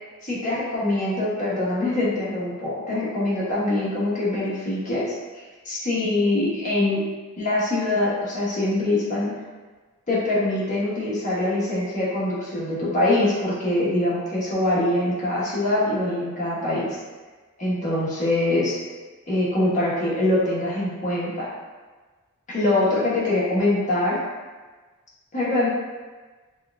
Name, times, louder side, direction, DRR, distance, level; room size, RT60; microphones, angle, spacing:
voice 1, 0.2-5.1 5.6-7.0 7.4-9.3 10.1-17.0 17.6-18.8 19.3-21.5 22.5-24.2 25.3-25.7, left 1 dB, 35° left, -7 dB, 1.1 m, -23 dB
5.6 x 2.4 x 2.3 m, 1.3 s
head